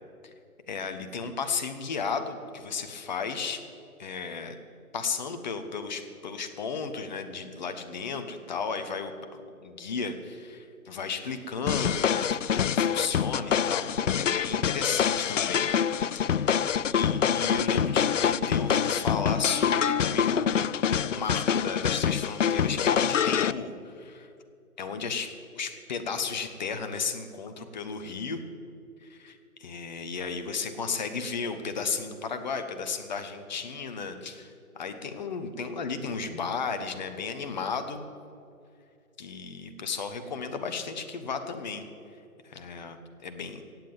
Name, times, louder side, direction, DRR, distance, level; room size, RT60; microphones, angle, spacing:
voice 1, 0.7-3.6 4.0-4.6 4.9-13.9 14.2-15.7 16.1-20.6 21.0-24.3 24.8-28.4 29.0-38.0 39.2-41.9 42.4-43.6, left 5 dB, 30° left, 8 dB, 1.1 m, -34 dB
sound 1, 11.7-23.5, left 8 dB, 60° left, 0.5 m, -26 dB
17.0 x 7.7 x 9.0 m, 2.5 s
figure-of-eight pair, 150°, 44 cm